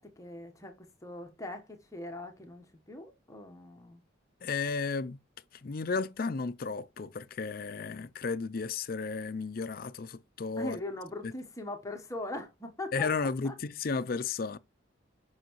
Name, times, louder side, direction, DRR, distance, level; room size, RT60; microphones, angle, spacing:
voice 1, 0.0-4.0 10.6-13.5, left 2 dB, 15° left, 1.1 m, -41 dB
voice 2, 4.4-5.2 5.5-10.8 11.2-11.3 12.9-14.6, left 4 dB, 45° left, 0.4 m, -33 dB
7.5 x 5.6 x 3.0 m
head